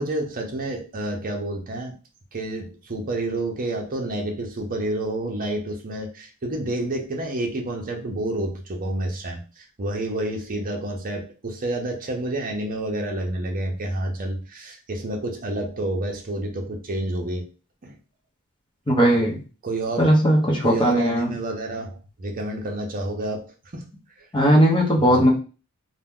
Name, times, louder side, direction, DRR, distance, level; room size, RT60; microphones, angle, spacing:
voice 1, 0.0-1.9 2.3-17.5 17.8-18.0 19.6-20.1 20.6-23.5 23.7-23.8 25.0-25.3, right 1 dB, 40° right, 2 dB, 0.7 m, -29 dB
voice 2, 18.9-19.4 20.0-21.3 24.3-25.3, equal, 20° left, -1 dB, 0.8 m, -18 dB
2.8 x 2.2 x 3.6 m, 0.35 s
head